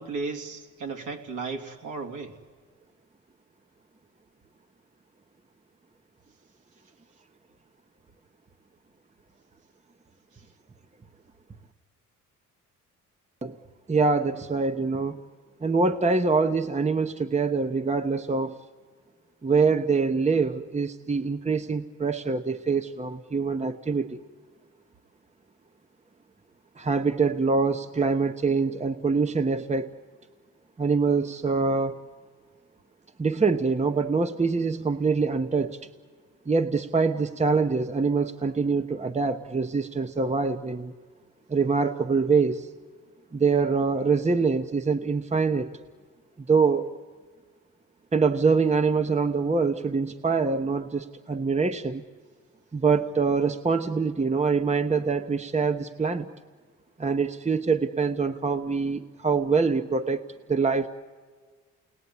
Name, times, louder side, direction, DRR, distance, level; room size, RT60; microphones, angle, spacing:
voice 1, 0.0-2.3, right 4 dB, 70° right, 4 dB, 3.1 m, -34 dB
voice 2, 13.9-15.2 15.6-18.6 19.4-24.2 26.8-29.9 30.8-32.0 33.2-35.8 36.5-40.9 41.5-42.7 43.3-45.7 46.5-46.9 48.1-52.0 52.7-56.3 57.0-60.9, right 4 dB, 20° right, 9 dB, 1.1 m, -24 dB
29.0 x 20.0 x 9.7 m, 1.5 s
cardioid pair, 80°, 32 cm